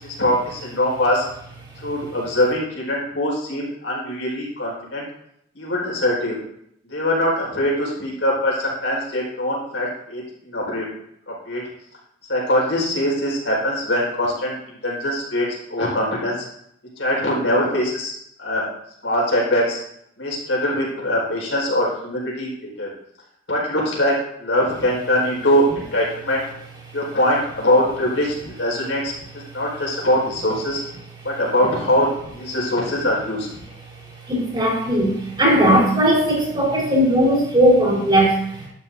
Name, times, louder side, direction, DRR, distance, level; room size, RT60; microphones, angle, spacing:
voice 1, 0.2-1.2 1.8-5.0 5.5-6.4 6.9-10.8 11.3-11.6 12.3-16.4 17.0-18.1 18.4-18.7 19.0-19.8 20.2-22.5 22.8-22.9 23.5-26.4 26.9-30.8 31.2-32.1 32.4-33.5, left 1 dB, 80° left, -3 dB, 4.6 m, -22 dB
voice 2, 34.3-38.7, right 1 dB, 25° right, -4 dB, 4.6 m, -18 dB
12.0 x 10.5 x 2.7 m, 0.74 s
head